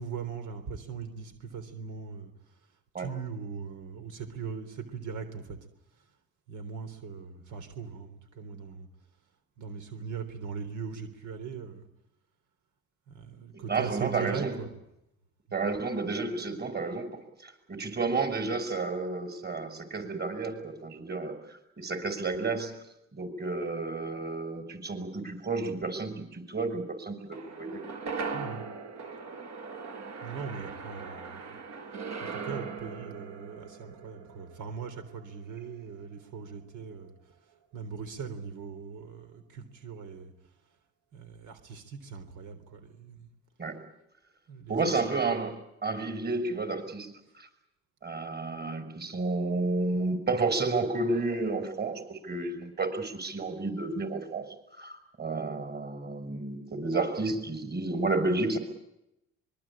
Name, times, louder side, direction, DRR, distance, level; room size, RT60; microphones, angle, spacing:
voice 1, 0.0-2.3 3.0-5.6 6.5-8.9 9.6-11.8 13.1-14.7 28.3-28.6 30.2-31.4 32.2-37.1 37.7-40.3 41.1-43.3 44.5-44.9, right 6 dB, 80° right, 8 dB, 3.6 m, -40 dB
voice 2, 13.5-14.6 15.5-22.7 23.1-27.8 43.6-43.8 44.7-47.5 48.0-54.5 54.7-58.6, right 3 dB, 35° right, 9 dB, 6.2 m, -31 dB
sound 1, 27.3-35.8 36.1-36.2, right 5 dB, 60° right, 4.8 m, -40 dB
25.0 x 22.5 x 8.8 m, 0.85 s
cardioid pair, 90°, 30 cm